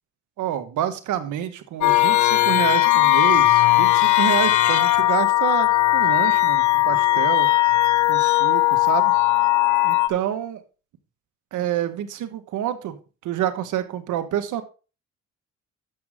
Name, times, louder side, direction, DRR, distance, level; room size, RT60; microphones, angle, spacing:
voice 1, 0.4-7.5 8.1-9.1 9.8-10.6 11.5-13.0 13.2-14.6, right 11 dB, 85° right, 10 dB, 1.5 m, -28 dB
sound 1, 1.8-10.1, left 16 dB, 80° left, 1.2 m, -18 dB
11.5 x 7.8 x 3.7 m, 0.33 s
cardioid pair, 90°, 30 cm